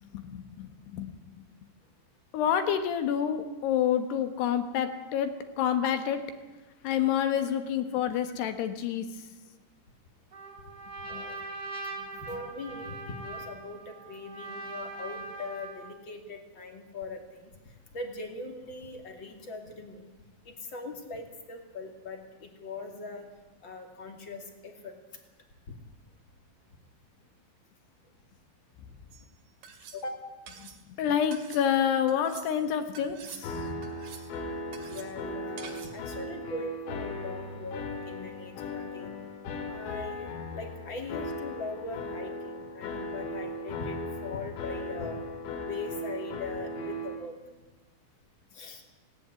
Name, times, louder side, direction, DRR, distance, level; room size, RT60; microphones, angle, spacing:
voice 1, 0.0-1.5 2.3-6.2 6.8-9.1 11.1-11.2 30.6-30.7 31.0-33.6, left 9 dB, 65° left, 9 dB, 3.1 m, -28 dB
Trumpet, 10.3-16.0, right 3 dB, 20° right, 3.3 m, -41 dB
voice 2, 12.2-20.1 20.4-23.3 23.6-24.9 29.9-30.2 33.7-33.8 34.9-39.1 39.5-45.2 45.6-47.3 48.5-48.8, left 3 dB, 35° left, 4 dB, 2.2 m, -41 dB
sound 1, 29.1-29.2 29.6-30.0 30.5-30.8 31.3-31.6 32.1-32.5 32.9-33.5 33.8-34.3 34.7-35.1 35.6-36.0, right 7 dB, 60° right, 3.7 m, -46 dB
sound 2, 33.4-47.2, left 1 dB, 85° left, 5.3 m, -37 dB
18.5 x 17.5 x 9.6 m, 1.1 s
omnidirectional pair, 5.8 m